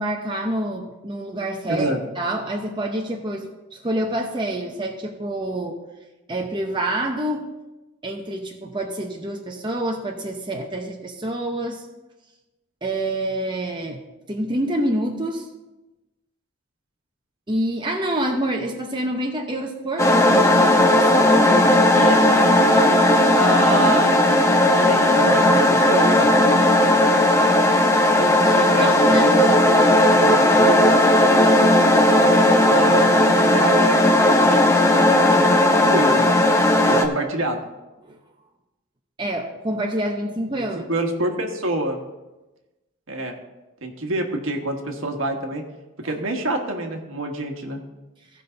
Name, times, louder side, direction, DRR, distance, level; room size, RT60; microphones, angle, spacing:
voice 1, 0.0-5.8 6.3-7.5 8.0-11.8 12.8-14.0 14.3-15.5 17.5-23.1 28.2-29.3 38.0-38.2 39.2-40.9 46.0-46.1, right 1 dB, 25° right, 2 dB, 0.7 m, -27 dB
voice 2, 1.7-2.0 23.4-26.3 28.7-29.9 30.2-31.0 32.7-34.0 34.4-36.3 36.9-37.6 40.6-42.0 43.1-43.3 43.8-45.6 46.0-47.8, right 1 dB, 75° right, 3 dB, 1.4 m, -27 dB
sound 1, 20.0-37.1, left 1 dB, 15° left, 0.6 m, -16 dB
15.5 x 5.5 x 3.9 m, 1.1 s
head